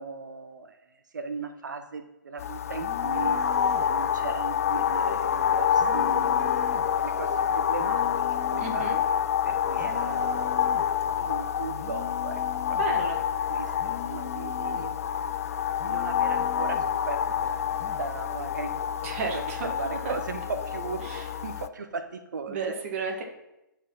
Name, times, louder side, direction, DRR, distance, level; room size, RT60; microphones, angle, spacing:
voice 1, 0.0-3.4 3.8-8.1 8.5-8.9 9.4-10.8 11.2-12.4 12.9-13.1 13.5-15.0 15.8-19.1 19.3-19.4 19.7-22.8, right 4 dB, 60° right, 8 dB, 0.8 m, -38 dB
sound 1, 2.4-21.7, left 8 dB, 45° left, 0.4 m, -27 dB
sound 2, 2.8-3.9 5.8-6.9 7.8-8.9 9.8-10.9 11.7-12.9 13.8-14.9 15.7-16.9 17.7-18.1, left 10 dB, 25° left, 1.0 m, -42 dB
voice 2, 8.6-9.0 12.7-13.2 19.0-20.1 21.0-21.3 22.5-23.2, right 4 dB, 40° right, 2 dB, 1.7 m, -32 dB
9.9 x 4.5 x 5.7 m, 0.92 s
figure-of-eight pair, 125°, 11 cm